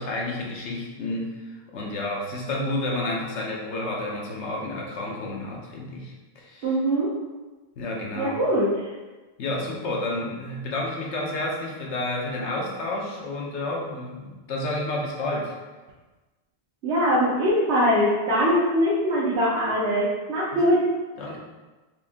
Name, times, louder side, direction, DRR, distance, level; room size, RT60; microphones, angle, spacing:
voice 1, 0.0-6.7 7.8-8.4 9.4-15.5 20.5-20.6 21.2-21.4, left 2 dB, 90° left, -2 dB, 1.1 m, -30 dB
voice 2, 6.6-7.1 8.2-8.7 16.8-20.8, equal, 80° right, -7 dB, 1.1 m, -22 dB
4.6 x 2.6 x 3.5 m, 1.2 s
omnidirectional pair, 1.1 m